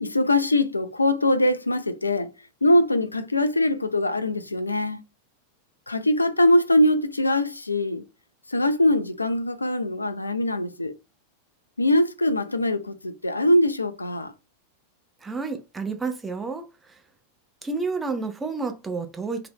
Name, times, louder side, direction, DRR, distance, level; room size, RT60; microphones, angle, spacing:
voice 1, 0.0-2.3 2.6-5.0 5.9-8.0 8.5-10.9 11.8-14.3, left 1 dB, 80° left, 0.3 m, -22 dB
voice 2, 15.2-16.7 17.6-19.5, right 4 dB, 10° right, 0.5 m, -30 dB
2.8 x 2.0 x 3.5 m
figure-of-eight pair, 90°, 0 cm